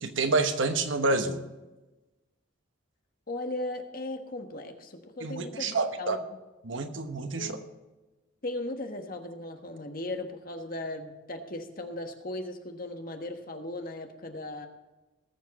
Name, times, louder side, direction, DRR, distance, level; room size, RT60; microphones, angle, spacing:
voice 1, 0.0-1.4 5.2-6.2 6.6-7.6, right 3 dB, 65° right, 7 dB, 1.1 m, -28 dB
voice 2, 3.3-6.2 7.4-7.6 8.4-14.7, left 2 dB, 45° left, 5 dB, 1.4 m, -37 dB
19.5 x 7.4 x 4.2 m, 1.1 s
head